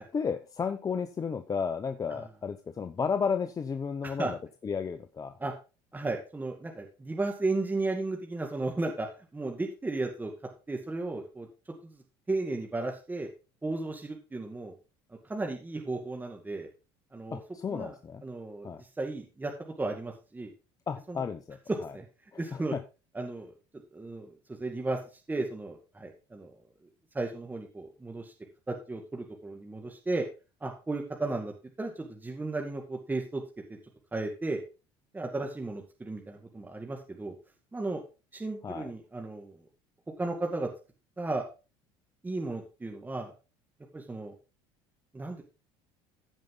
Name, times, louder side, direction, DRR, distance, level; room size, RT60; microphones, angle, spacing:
voice 1, 0.0-4.4 4.6-5.3 17.3-18.2 18.6-18.8 20.9-21.6 21.8-21.9 22.5-22.8 38.6-38.9, left 6 dB, 30° left, 9 dB, 0.8 m, -33 dB
voice 2, 5.9-9.1 9.3-10.3 10.7-11.5 11.8-12.0 12.3-13.3 13.6-14.7 15.3-16.7 17.1-17.4 17.7-18.0 18.2-20.5 21.1-21.2 21.9-22.1 22.4-22.7 23.1-23.5 23.9-25.0 25.3-26.6 27.1-28.3 28.7-30.3 30.6-33.4 33.7-33.8 34.1-34.6 35.1-37.3 37.7-38.0 38.3-39.6 40.2-40.7 41.2-41.4 42.2-43.3 43.9-44.3 45.1-45.4, right 2 dB, 15° right, 2 dB, 2.0 m, -34 dB
15.5 x 5.3 x 3.8 m, 0.31 s
supercardioid pair, 90°, 12 cm